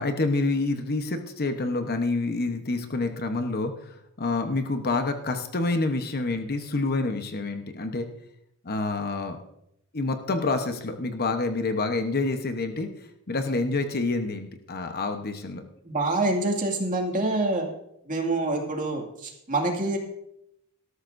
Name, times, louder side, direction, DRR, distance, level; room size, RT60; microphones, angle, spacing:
voice 1, 0.0-8.1 8.6-9.4 9.9-15.6, left 3 dB, 45° left, 6 dB, 1.0 m, -28 dB
voice 2, 15.9-17.7 18.1-20.0, right 2 dB, 35° right, 1 dB, 2.3 m, -26 dB
18.5 x 13.0 x 2.6 m, 0.80 s
head